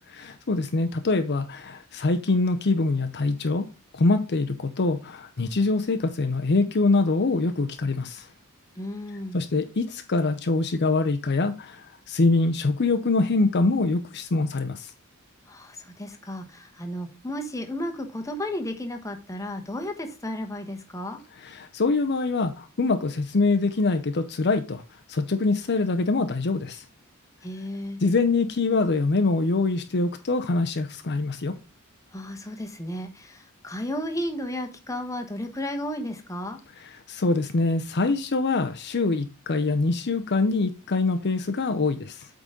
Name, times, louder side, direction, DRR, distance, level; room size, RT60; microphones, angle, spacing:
voice 1, 0.2-3.6 3.9-8.3 9.3-14.9 21.4-24.8 25.1-26.8 28.0-31.5 37.1-42.3, left 3 dB, 50° left, 0.6 m, -24 dB
voice 2, 8.8-9.4 15.5-21.2 27.4-28.0 32.1-36.6, left 1 dB, 15° left, 1.1 m, -33 dB
8.3 x 3.9 x 5.0 m
head